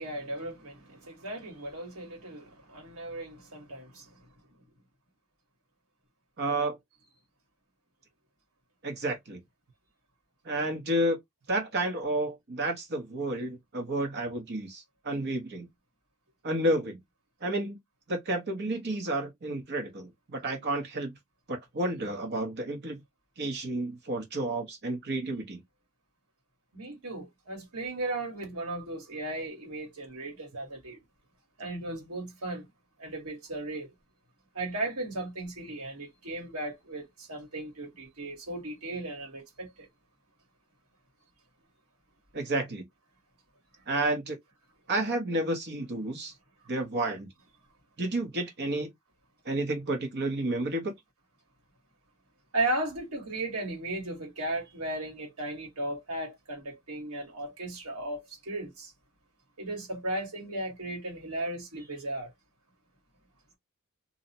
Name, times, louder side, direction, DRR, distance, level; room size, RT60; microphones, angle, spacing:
voice 1, 0.0-4.2 26.7-31.0 31.6-32.7 33.0-33.9 34.5-39.9 52.5-58.9 59.6-62.3, right 2 dB, 75° right, 1.5 m, -36 dB
voice 2, 6.4-6.8 8.8-9.4 10.4-11.2 11.5-15.7 16.4-17.0 17.4-17.8 18.1-21.1 21.5-23.0 23.4-25.6 42.3-42.8 43.9-44.4 44.9-46.3 46.7-47.3 48.0-48.9 49.4-50.9, right 1 dB, 50° right, 0.8 m, -31 dB
2.6 x 2.0 x 2.7 m
head